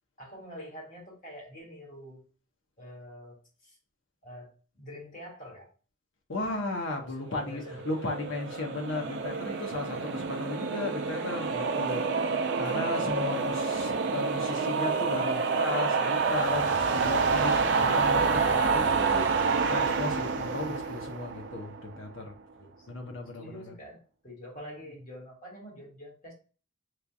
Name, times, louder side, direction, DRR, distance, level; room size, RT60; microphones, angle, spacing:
voice 1, 0.2-2.2 2.8-3.8 4.2-5.7 7.0-8.5 12.5-12.9 22.5-22.9 23.3-26.3, equal, 40° left, -2 dB, 1.6 m, -46 dB
voice 2, 6.3-19.3 19.6-22.2 22.9-23.6, left 2 dB, 65° left, 2 dB, 0.9 m, -35 dB
sound 1, 7.7-22.0, right 4 dB, 60° right, 0.5 m, -28 dB
3.2 x 2.4 x 4.0 m, 0.37 s
head